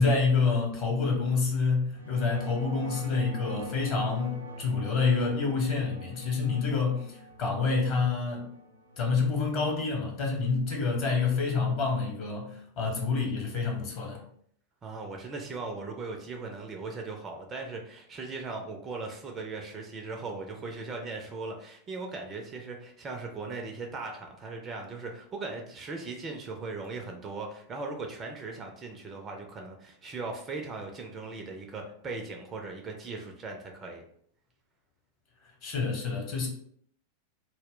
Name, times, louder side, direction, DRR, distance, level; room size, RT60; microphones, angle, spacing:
voice 1, 0.0-8.5 9.0-14.2 35.6-36.5, left 4 dB, 40° left, 0 dB, 0.8 m, -27 dB
sound 1, 1.9-10.6, equal, 80° right, 0.5 m, -44 dB
voice 2, 14.8-34.0, right 3 dB, 25° right, 2 dB, 0.4 m, -38 dB
2.1 x 2.0 x 3.5 m, 0.65 s
figure-of-eight pair, 90°, 0 cm